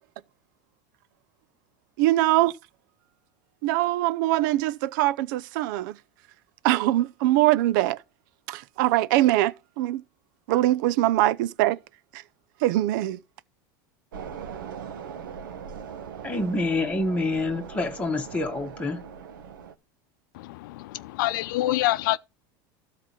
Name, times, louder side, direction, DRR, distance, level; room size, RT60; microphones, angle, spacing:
voice 1, 2.0-2.5 3.6-5.9 6.6-8.0 8.5-10.0 10.5-11.8 12.6-13.2, right 15 dB, 70° right, 0.6 m, -22 dB
sound 1, 14.1-19.7, right 7 dB, 90° right, 1.4 m, -40 dB
voice 2, 16.2-19.0, left 2 dB, 10° left, 1.5 m, -27 dB
voice 3, 20.3-22.2, left 16 dB, 75° left, 0.6 m, -26 dB
12.5 x 4.2 x 7.3 m
supercardioid pair, 115°, 11 cm